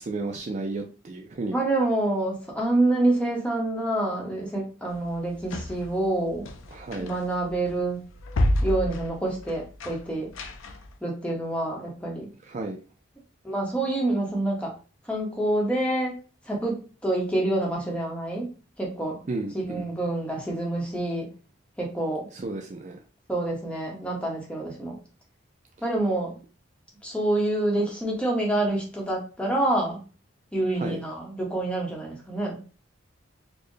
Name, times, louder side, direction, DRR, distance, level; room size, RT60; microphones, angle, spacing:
voice 1, 0.0-1.6 6.7-7.1 12.4-12.8 19.3-19.9 22.3-23.0 30.8-31.0, right 2 dB, 35° right, 3 dB, 0.4 m, -33 dB
voice 2, 1.5-6.4 7.0-8.0 8.6-10.3 11.0-12.3 13.4-14.7 15.1-16.2 16.5-18.5 18.8-19.2 19.5-21.3 21.8-22.3 23.3-25.0 25.8-26.3 27.0-30.0 30.5-32.6, right 1 dB, 5° left, -2 dB, 0.8 m, -27 dB
sound 1, 4.9-11.0, left 1 dB, 75° left, 0.5 m, -30 dB
4.2 x 2.1 x 3.1 m, 0.35 s
head